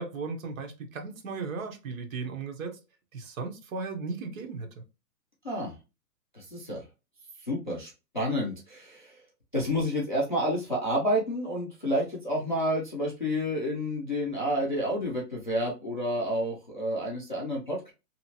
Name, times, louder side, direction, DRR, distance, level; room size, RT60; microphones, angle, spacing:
voice 1, 0.0-2.8 3.1-4.8, right 4 dB, 55° right, 3 dB, 0.8 m, -36 dB
voice 2, 5.4-5.8 6.3-6.8 7.4-9.2 9.5-17.9, equal, 35° left, -4 dB, 0.4 m, -29 dB
2.8 x 2.3 x 2.7 m, 0.28 s
hypercardioid pair, 170°, 49 cm